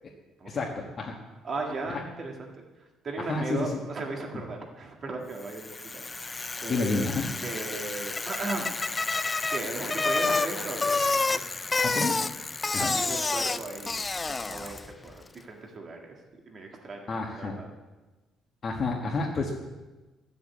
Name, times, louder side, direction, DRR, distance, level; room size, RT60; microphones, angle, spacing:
voice 1, 0.5-1.1 3.3-3.7 6.7-7.3 11.8-12.1 12.7-13.0 17.1-17.5 18.6-19.5, left 3 dB, 35° left, -2 dB, 1.4 m, -29 dB
voice 2, 1.4-2.6 3.0-6.4 6.6-7.0 7.4-8.7 9.5-11.8 12.7-14.0 14.3-16.2 16.5-17.7, right 3 dB, 35° right, 1 dB, 1.8 m, -37 dB
Bicycle, 5.5-14.9, left 3 dB, 15° left, 0.3 m, -29 dB
13.0 x 7.7 x 8.3 m, 1.2 s
cardioid pair, 165°, 0 cm